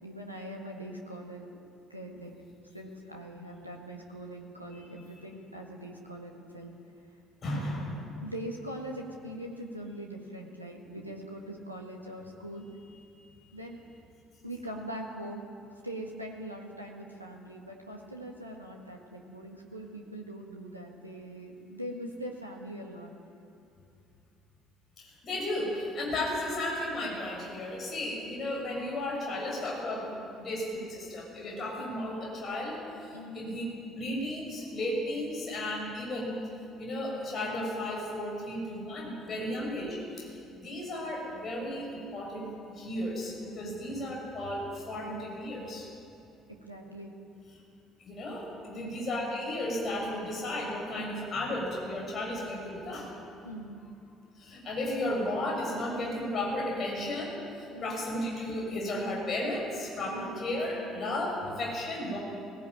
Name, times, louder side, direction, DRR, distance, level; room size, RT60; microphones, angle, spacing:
voice 1, 0.0-1.5 1.9-2.3 2.7-6.7 7.5-12.7 13.5-13.8 14.4-15.5 15.8-23.1 30.1-30.3 33.1-33.5 39.5-39.6 46.5-47.1 48.7-49.0 53.4-53.8 57.7-58.0 60.1-60.4, right 1 dB, 90° right, 0 dB, 1.7 m, -42 dB
voice 2, 7.4-7.9 13.2-13.3 25.0-30.1 30.4-33.6 34.0-36.4 36.8-42.5 42.8-45.9 48.0-53.1 54.4-62.2, left 1 dB, 40° left, -2 dB, 6.9 m, -34 dB
18.0 x 18.0 x 9.1 m, 2.7 s
figure-of-eight pair, 55°, 0 cm